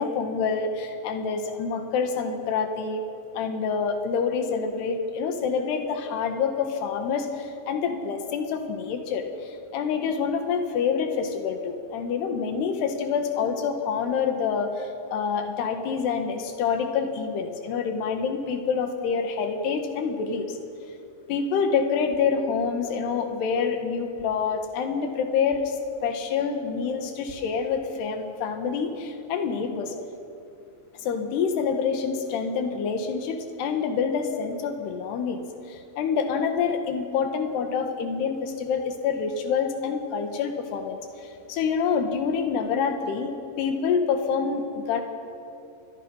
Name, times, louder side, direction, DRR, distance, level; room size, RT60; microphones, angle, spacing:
voice 1, 0.0-3.0 3.3-20.6 21.3-25.8 26.0-29.9 31.0-35.4 35.7-45.0, left 6 dB, 85° left, 6 dB, 3.8 m, -27 dB
29.0 x 22.5 x 5.6 m, 2.7 s
omnidirectional pair, 4.6 m